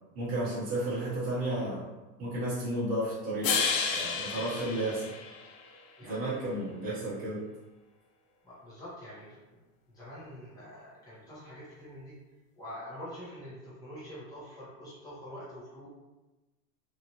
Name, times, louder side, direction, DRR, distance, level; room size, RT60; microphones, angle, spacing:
voice 1, 0.1-1.9 2.2-3.6 3.8-5.0 6.1-7.4, right 1 dB, 20° right, -10 dB, 1.0 m, -32 dB
sound 1, 3.4-5.8, left 6 dB, 55° left, 0.5 m, -31 dB
voice 2, 4.2-4.7 6.0-6.4 8.4-9.6 9.9-12.1 12.6-15.9, equal, 10° left, -10 dB, 0.8 m, -46 dB
2.8 x 2.4 x 2.9 m, 1.1 s
supercardioid pair, 150°, 48 cm